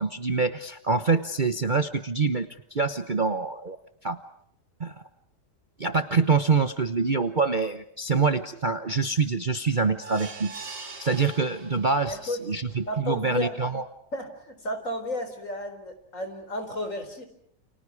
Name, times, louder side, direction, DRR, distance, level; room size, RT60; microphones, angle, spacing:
voice 1, 0.0-3.8 4.0-4.2 4.8-4.9 5.8-10.5 11.0-13.8, right 4 dB, 35° right, 8 dB, 1.0 m, -25 dB
sound 1, 10.0-12.2 12.7-12.8 13.1-13.2, right 3 dB, 80° right, 3.6 m, -41 dB
voice 2, 12.0-12.4 12.9-13.6 14.1-17.3, left 1 dB, 50° left, 7 dB, 4.6 m, -32 dB
30.0 x 30.0 x 4.8 m, 0.69 s
omnidirectional pair, 1.7 m